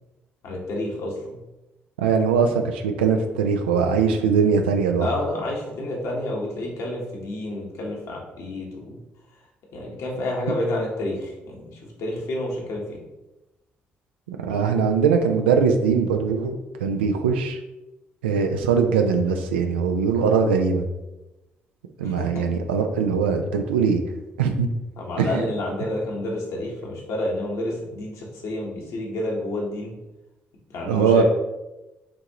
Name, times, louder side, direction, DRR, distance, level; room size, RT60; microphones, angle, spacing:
voice 1, 0.4-1.4 5.0-9.0 9.7-13.0 22.0-22.4 25.0-29.9 30.7-31.2, left 1 dB, 70° left, -2 dB, 1.1 m, -29 dB
voice 2, 2.0-5.1 14.3-17.6 18.2-20.9 22.0-24.0 24.4-24.7 25.2-25.4 30.9-31.2, right 6 dB, 90° right, 5 dB, 0.4 m, -21 dB
5.8 x 2.6 x 2.9 m, 1.0 s
hypercardioid pair, 45°, 6 cm